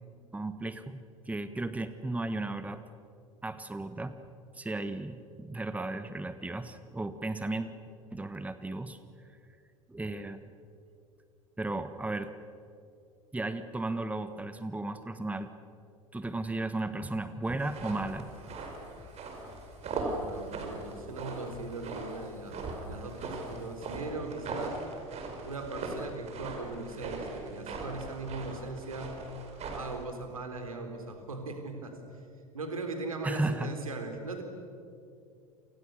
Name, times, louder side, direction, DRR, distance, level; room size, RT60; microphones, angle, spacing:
voice 1, 0.3-2.8 3.4-4.2 4.5-7.7 8.1-9.0 9.9-10.4 11.6-12.3 13.3-15.5 16.1-18.3 33.2-33.7, right 2 dB, 10° right, 11 dB, 1.4 m, -35 dB
sound 1, 17.4-24.0, left 3 dB, 40° left, 7.9 m, -54 dB
sound 2, 17.6-30.0, right 3 dB, 35° right, 5.7 m, -40 dB
voice 2, 19.9-24.8 25.4-29.2 29.7-32.0 32.5-34.4, right 2 dB, 80° right, 5 dB, 4.0 m, -39 dB
29.5 x 28.5 x 6.8 m, 2.5 s
figure-of-eight pair, 70°, 18 cm